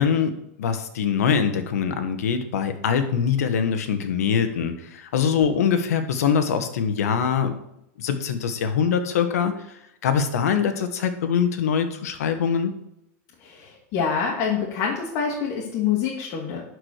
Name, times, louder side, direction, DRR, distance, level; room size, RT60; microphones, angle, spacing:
voice 1, 0.0-7.6 8.0-12.7, left 7 dB, 80° left, 8 dB, 1.5 m, -23 dB
voice 2, 13.4-16.6, left 7 dB, 45° left, -2 dB, 2.3 m, -26 dB
11.5 x 4.9 x 6.6 m, 0.81 s
supercardioid pair, 140°, 8 cm